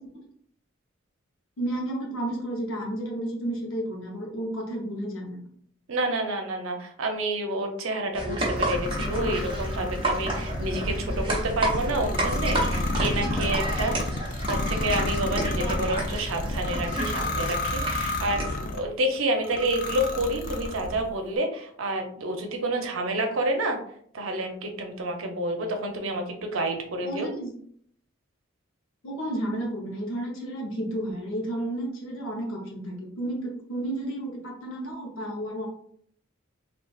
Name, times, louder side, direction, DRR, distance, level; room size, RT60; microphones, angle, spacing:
voice 1, 1.6-5.5 27.0-27.5 29.0-35.7, right 1 dB, 75° left, -1 dB, 0.7 m, -32 dB
voice 2, 5.9-13.9 14.5-23.8 24.1-27.3, right 1 dB, 80° right, 4 dB, 0.6 m, -29 dB
sound 1, 8.1-18.6, right 1 dB, 25° right, 0.7 m, -30 dB
sound 2, 8.6-18.9 19.4-21.1, left 2 dB, 40° left, 0.3 m, -31 dB
3.8 x 2.3 x 2.3 m, 0.63 s
head